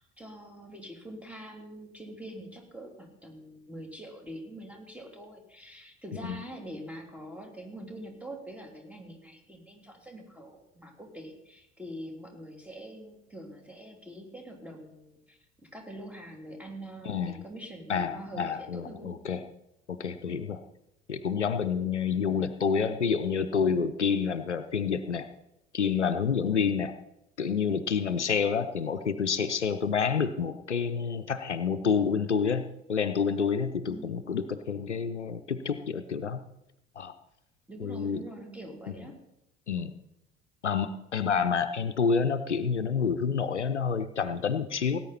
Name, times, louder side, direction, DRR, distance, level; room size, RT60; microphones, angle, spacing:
voice 1, 0.0-15.4 15.7-19.1 33.8-34.2 37.7-39.2, right 1 dB, 5° right, 2 dB, 3.3 m, -44 dB
voice 2, 17.1-17.4 17.9-19.4 19.9-20.6 21.1-25.3 25.7-26.9 27.4-32.6 32.9-36.4 37.0-37.1 37.8-38.2 39.7-39.9 40.6-45.0, left 6 dB, 90° left, 11 dB, 0.6 m, -28 dB
18.0 x 9.3 x 4.3 m, 0.84 s
figure-of-eight pair, 60°, 34 cm